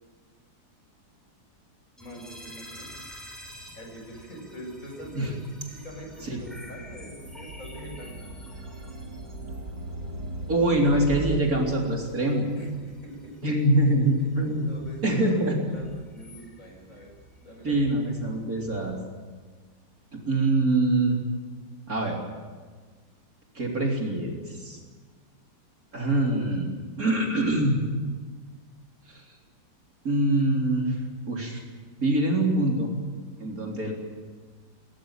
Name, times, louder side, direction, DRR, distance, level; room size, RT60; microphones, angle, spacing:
voice 1, 2.0-2.9 3.7-5.4 5.7-8.1 12.5-13.4 14.2-14.3 14.6-17.1 17.4-18.0, equal, 45° left, 1 dB, 6.6 m, -43 dB
sound 1, 2.0-19.0, equal, ahead, 5.9 m, -49 dB
sound 2, 2.7-4.3 4.7-11.4, right 2 dB, 65° right, 2.8 m, -39 dB
voice 2, 10.5-12.5 13.4-14.7 15.0-15.6 17.6-19.0 20.1-21.2 21.9-22.2 23.5-24.8 25.9-26.7 27.0-27.8 29.1-29.2 30.0-31.0 31.3-31.6 32.0-32.9 33.4-33.9, right 1 dB, 50° right, 0 dB, 4.0 m, -24 dB
21.5 x 19.0 x 9.1 m, 1.4 s
omnidirectional pair, 2.0 m